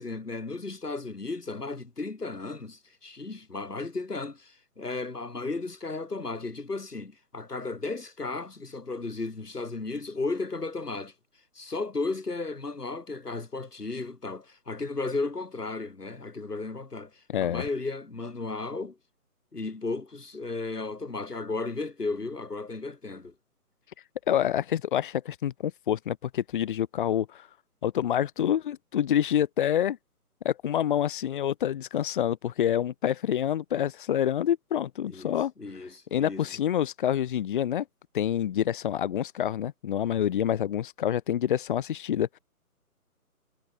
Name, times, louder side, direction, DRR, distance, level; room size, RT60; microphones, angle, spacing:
voice 1, 0.0-11.1 11.5-19.0 19.5-23.3 35.1-36.5, left 3 dB, 90° left, 7.6 m, -34 dB
voice 2, 17.3-17.6 24.3-27.5 27.8-30.0 30.4-35.5 36.1-37.8 38.1-42.4, left 10 dB, 35° left, 2.4 m, -27 dB
figure-of-eight pair, 155°, 45 cm